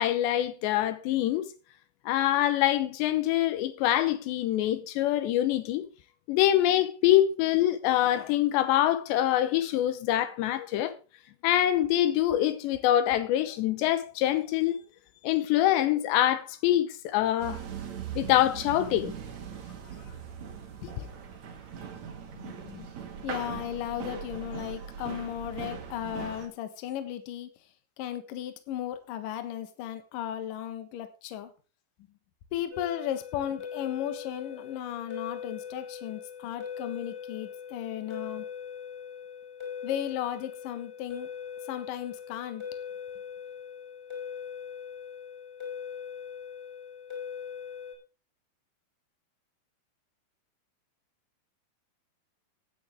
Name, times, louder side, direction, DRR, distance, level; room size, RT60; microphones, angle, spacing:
voice 1, 0.0-1.5 2.1-5.8 6.3-10.9 11.4-14.8 15.2-17.6 18.2-19.1 20.8-20.9, left 13 dB, 80° left, 3.1 m, -25 dB
sound 1, 17.4-26.5, right 7 dB, 50° right, 2.5 m, -40 dB
voice 2, 22.3-22.9 23.2-27.5 28.0-31.5 32.5-38.4 39.8-41.3 41.7-42.6, left 11 dB, 60° left, 2.6 m, -35 dB
sound 2, 32.7-47.9, left 7 dB, 5° left, 5.3 m, -41 dB
16.0 x 9.7 x 3.5 m
omnidirectional pair, 5.1 m